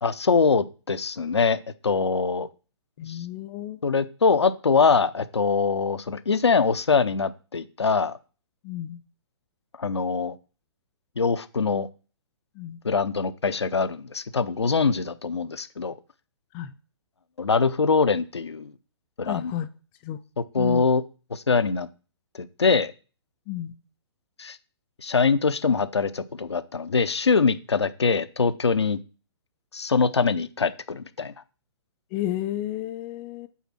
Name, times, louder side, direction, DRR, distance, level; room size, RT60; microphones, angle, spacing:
voice 1, 0.0-2.5 3.1-3.2 3.8-8.2 9.8-10.3 11.2-11.9 12.8-15.9 17.4-18.7 19.2-19.5 20.5-21.0 21.3-21.9 22.4-22.9 24.4-24.6 25.0-29.0 29.7-31.3, left 5 dB, 70° left, 0.7 m, -23 dB
voice 2, 3.0-3.8 8.6-9.0 12.6-12.8 16.5-16.7 19.2-19.7 20.0-20.2 20.6-20.8 23.5-23.7 32.1-33.5, left 13 dB, 20° left, 0.5 m, -32 dB
8.4 x 4.0 x 5.9 m
figure-of-eight pair, 125°, 15 cm